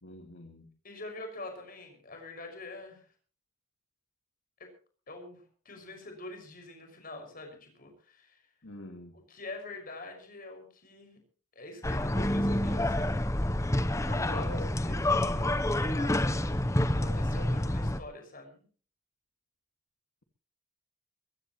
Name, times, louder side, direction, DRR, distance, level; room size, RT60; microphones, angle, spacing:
voice 1, 0.0-0.7 8.6-9.1 14.3-14.8, left 2 dB, 60° left, 3 dB, 2.0 m, -43 dB
voice 2, 0.8-3.1 4.6-4.7 5.1-8.4 9.1-11.2 11.5-13.2 14.0-14.5 14.8-18.6, left 2 dB, 40° left, 4 dB, 5.8 m, -45 dB
sound 1, 11.8-18.0, left 1 dB, 15° left, 0.7 m, -28 dB
23.0 x 15.5 x 3.1 m, 0.41 s
head